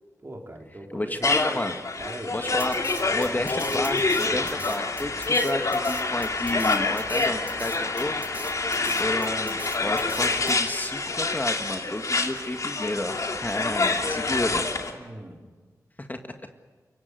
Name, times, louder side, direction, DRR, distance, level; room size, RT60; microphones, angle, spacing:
voice 1, 0.2-1.7 2.0-2.3 3.0-3.5 4.2-4.5 14.3-14.6 14.9-15.4, right 1 dB, 35° right, 1 dB, 4.1 m, -41 dB
voice 2, 0.9-1.8 2.3-8.2 9.0-14.7 16.0-16.2, left 1 dB, 25° left, 6 dB, 1.8 m, -31 dB
sound 1, 1.2-14.9, left 3 dB, 55° left, 2.7 m, -27 dB
Drum kit, 2.6-10.5, right 1 dB, 20° right, 6.9 m, -41 dB
28.0 x 17.0 x 8.3 m, 1.4 s
cardioid pair, 45°, 7 cm